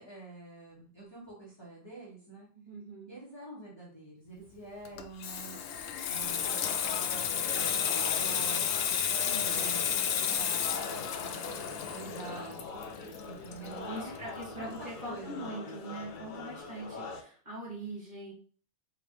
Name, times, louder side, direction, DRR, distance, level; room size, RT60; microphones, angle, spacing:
voice 1, 0.0-2.5 3.1-5.6 6.1-9.0 9.3-12.8 13.2-14.2 14.5-15.5, right 2 dB, 20° left, -8 dB, 1.7 m, -47 dB
voice 2, 2.5-3.1 9.2-9.7 13.4-18.3, right 2 dB, 40° right, -6 dB, 2.3 m, -43 dB
Water tap faucet / Sink (filling or washing), 4.9-14.2 14.5-14.7, left 8 dB, 80° left, 0.9 m, -32 dB
sound 1, 6.2-17.2, left 4 dB, 50° left, 0.6 m, -42 dB
4.8 x 3.1 x 3.1 m, 0.44 s
omnidirectional pair, 1.3 m